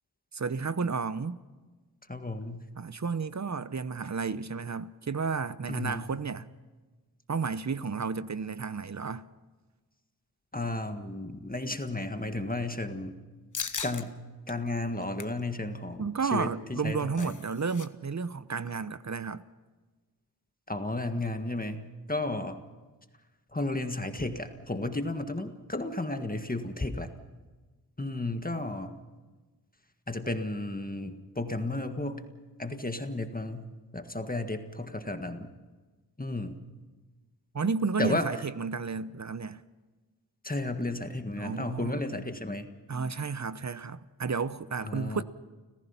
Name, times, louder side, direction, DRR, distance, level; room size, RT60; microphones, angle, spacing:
voice 1, 0.3-1.4 2.8-6.5 7.3-9.3 16.0-19.4 37.5-39.6 41.4-42.0 42.9-45.2, right 5 dB, 45° right, 0.8 m, -32 dB
voice 2, 2.1-2.7 5.7-6.1 10.5-13.2 13.8-14.2 14.5-17.3 20.7-22.6 23.5-27.1 28.0-29.0 30.1-32.2 32.6-33.7 33.9-35.5 36.2-36.6 38.0-38.3 40.4-42.7 44.8-45.2, left 2 dB, 20° left, 1.7 m, -33 dB
sound 1, 13.5-14.0 14.5-14.6 15.0-15.4 16.7-17.9 18.1-18.3 18.6-18.9, left 5 dB, 50° left, 1.1 m, -38 dB
30.0 x 15.5 x 5.7 m
cardioid pair, 40°, 41 cm